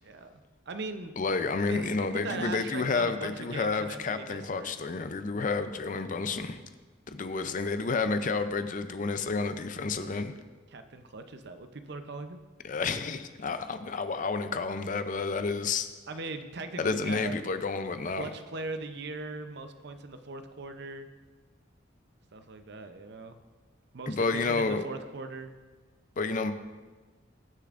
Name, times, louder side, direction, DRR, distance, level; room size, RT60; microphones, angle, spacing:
voice 1, 0.0-0.4 0.7-1.1 1.7-4.8 10.7-12.4 16.1-17.3 18.2-21.1 22.3-23.4 23.9-25.5, right 3 dB, 60° right, 8 dB, 0.7 m, -40 dB
voice 2, 1.2-6.6 7.1-10.3 12.6-15.9 16.8-18.3 24.1-24.9 26.2-26.5, left 4 dB, 40° left, 9 dB, 0.5 m, -30 dB
19.0 x 6.7 x 2.5 m, 1.3 s
head